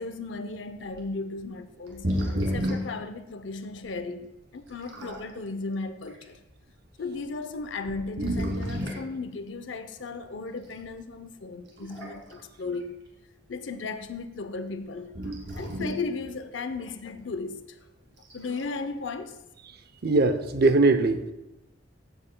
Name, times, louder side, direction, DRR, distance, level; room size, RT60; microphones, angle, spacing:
voice 1, 0.0-2.1 2.5-6.4 7.0-12.9 13.5-17.8 18.3-19.4, left 3 dB, 85° left, 0.6 m, -36 dB
sound 1, 0.8-1.0 1.9-3.0 3.8-3.9 4.6-5.3 6.0-6.2 7.1-7.2 7.8-9.1 10.7-10.9 11.7-12.4 12.7-12.8 15.1-16.1 18.2-18.7, equal, 80° right, 2.2 m, -31 dB
voice 2, 20.0-21.3, right 3 dB, 55° right, 0.6 m, -21 dB
14.0 x 7.7 x 2.2 m
head